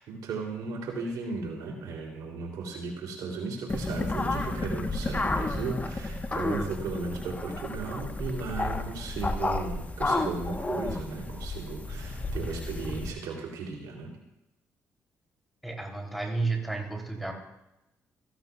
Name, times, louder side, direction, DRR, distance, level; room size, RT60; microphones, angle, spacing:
voice 1, 0.0-14.1, right 4 dB, 80° right, 0 dB, 3.0 m, -35 dB
sound 1, 3.7-13.1, left 2 dB, 25° left, 1.1 m, -32 dB
voice 2, 15.6-17.3, right 3 dB, ahead, 0 dB, 3.1 m, -31 dB
16.0 x 15.0 x 2.4 m, 0.92 s
supercardioid pair, 65°, 6 cm